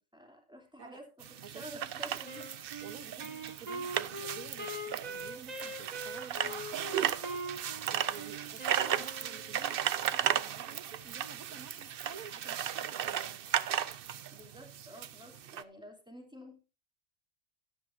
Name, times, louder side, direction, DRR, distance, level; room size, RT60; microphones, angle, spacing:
voice 1, 0.1-2.5 14.3-16.6, equal, 5° right, 3.0 m, -50 dB
sound 1, 1.2-15.6, right 9 dB, 55° right, 0.6 m, -35 dB
voice 2, 1.4-1.8 2.1-2.2 2.8-13.4, right 6 dB, 80° right, 1.7 m, -51 dB
Wind instrument woodwind instrument, 2.3-9.7, right 1 dB, 30° right, 1.9 m, -42 dB
13.0 x 11.5 x 2.7 m
omnidirectional pair, 1.5 m